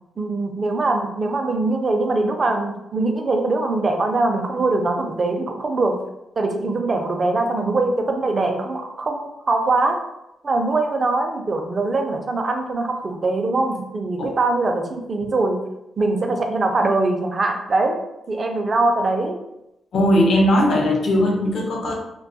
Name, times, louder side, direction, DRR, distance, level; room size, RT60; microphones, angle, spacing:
voice 1, 0.2-6.0 6.4-10.0 10.4-15.6 16.0-18.0 18.3-19.4, right 2 dB, 40° right, 4 dB, 0.4 m, -22 dB
voice 2, 19.9-21.9, left 1 dB, 65° left, 0 dB, 0.6 m, -18 dB
2.6 x 2.2 x 2.6 m, 0.87 s
cardioid pair, 95°, 0 cm